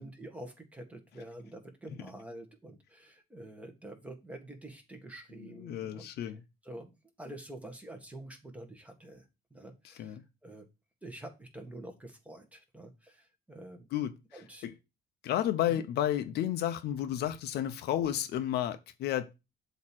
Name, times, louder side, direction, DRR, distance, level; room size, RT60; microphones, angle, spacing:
voice 1, 0.0-10.7 11.0-13.9 14.3-14.7 15.7-15.8, right 1 dB, 10° right, 1.7 m, -47 dB
voice 2, 5.6-6.4 10.0-10.2 13.9-14.1 14.6-14.7 15.2-19.3, left 11 dB, 75° left, 0.8 m, -31 dB
7.5 x 3.1 x 6.1 m
cardioid pair, 110°, 17 cm